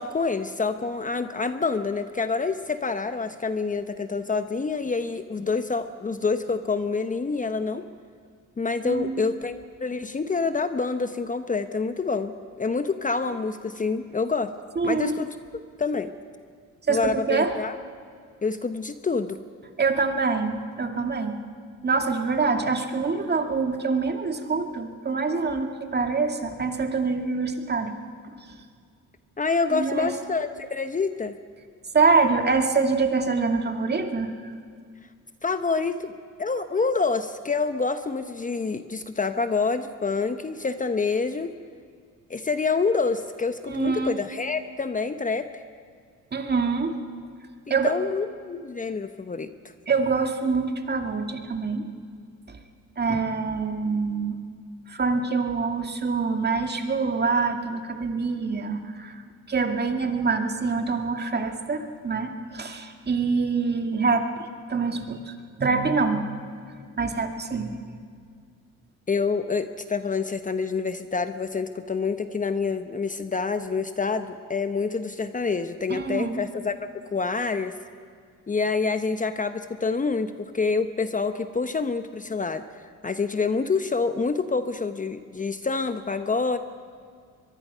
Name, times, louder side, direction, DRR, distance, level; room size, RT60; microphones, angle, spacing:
voice 1, 0.0-7.8 8.6-14.5 14.8-15.3 15.8-16.1 16.9-17.7 18.4-19.4 29.4-31.4 35.4-36.1 36.4-41.5 42.3-45.5 47.7-49.5 69.1-77.7 78.5-86.6, left 4 dB, 25° left, 9 dB, 0.9 m, -27 dB
voice 2, 8.8-9.2 14.8-15.2 16.9-17.5 19.8-21.4 21.8-27.9 28.2-28.3 29.7-30.1 31.9-34.5 43.6-44.1 46.3-46.9 47.7-47.9 49.9-51.9 52.5-52.6 53.0-54.3 54.9-59.2 59.5-64.3 64.7-66.2 67.0-67.8 75.9-76.4, right 4 dB, 35° right, 5 dB, 2.2 m, -25 dB
23.5 x 22.5 x 5.7 m, 2.1 s
cardioid pair, 90°, 30 cm